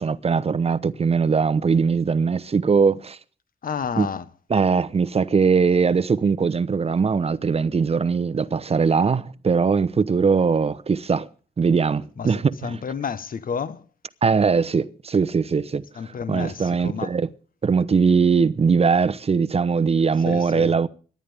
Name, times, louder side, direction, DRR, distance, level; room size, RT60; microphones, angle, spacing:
voice 1, 0.0-3.2 4.0-4.1 4.5-11.3 11.6-12.8 14.2-15.8 16.3-17.3 17.6-20.9, right 5 dB, 40° right, 0.9 m, -21 dB
voice 2, 3.6-4.3 12.2-12.3 12.6-13.8 15.9-17.1 20.2-20.7, left 6 dB, 65° left, 1.3 m, -30 dB
24.5 x 11.5 x 3.5 m
cardioid pair, 95°, 16 cm